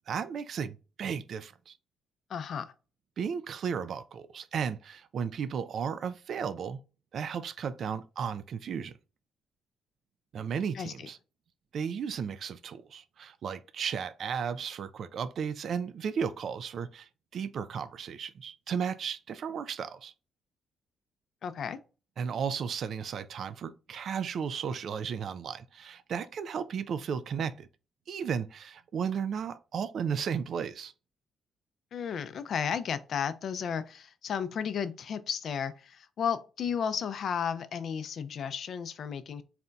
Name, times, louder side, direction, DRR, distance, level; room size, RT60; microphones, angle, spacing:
voice 1, 0.1-1.8 3.2-6.8 7.1-9.0 10.3-11.2 11.7-20.1 22.2-27.7 28.1-30.9, right 7 dB, 60° right, 0.3 m, -34 dB
voice 2, 2.3-2.7 10.7-11.1 21.4-21.8 31.9-39.4, left 7 dB, 60° left, 0.4 m, -33 dB
4.2 x 2.2 x 3.8 m
cardioid pair, 90°, 0 cm